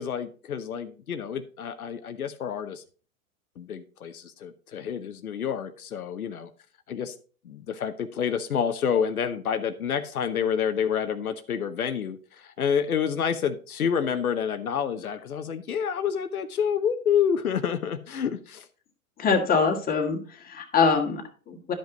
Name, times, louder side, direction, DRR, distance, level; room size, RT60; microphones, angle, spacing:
voice 1, 0.0-2.8 3.6-6.5 6.9-7.1 7.4-18.7, left 7 dB, 90° left, 9 dB, 0.9 m, -28 dB
voice 2, 19.2-21.7, left 5 dB, 20° left, 2 dB, 2.0 m, -24 dB
11.5 x 5.4 x 3.9 m, 0.39 s
hypercardioid pair, 110°, 42 cm